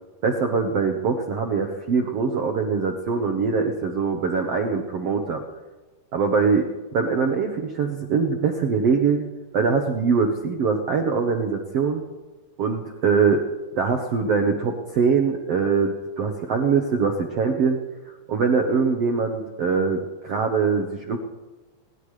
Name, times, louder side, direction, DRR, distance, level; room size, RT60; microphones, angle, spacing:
voice 1, 0.2-5.4 6.1-6.7 6.9-9.3 9.5-12.0 12.6-13.4 13.7-17.8 18.3-21.2, right 5 dB, 85° right, 3 dB, 1.3 m, -23 dB
21.5 x 20.0 x 3.3 m, 1.2 s
omnidirectional pair, 4.6 m